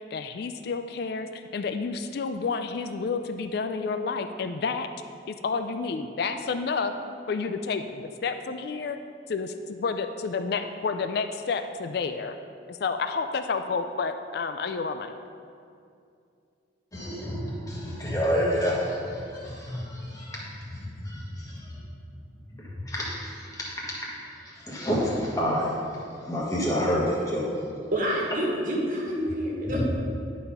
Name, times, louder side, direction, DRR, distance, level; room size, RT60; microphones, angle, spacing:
voice 1, 0.0-4.9 5.3-6.9 7.3-9.0 9.3-12.3 12.7-15.1, left 4 dB, 55° left, 8 dB, 0.4 m, -30 dB
voice 2, 16.9-21.8 22.6-24.1 24.4-25.7 26.2-27.5 29.6-29.8, equal, 20° left, -6 dB, 1.7 m, -29 dB
voice 3, 27.9-29.8, equal, 45° right, -3 dB, 1.6 m, -28 dB
11.0 x 4.2 x 5.4 m, 2.5 s
head